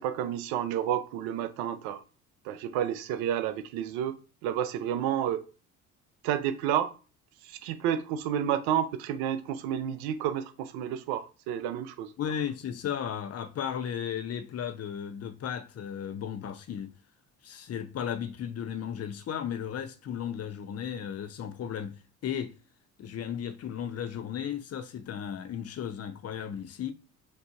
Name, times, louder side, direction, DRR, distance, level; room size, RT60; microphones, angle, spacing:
voice 1, 0.0-2.0 2.4-4.2 4.4-5.4 6.2-7.0 7.4-12.1, right 10 dB, 60° right, 0.6 m, -30 dB
voice 2, 12.2-16.9 17.4-22.5 23.0-26.9, left 8 dB, 35° left, 0.6 m, -35 dB
6.0 x 2.7 x 2.4 m
figure-of-eight pair, 50°, 42 cm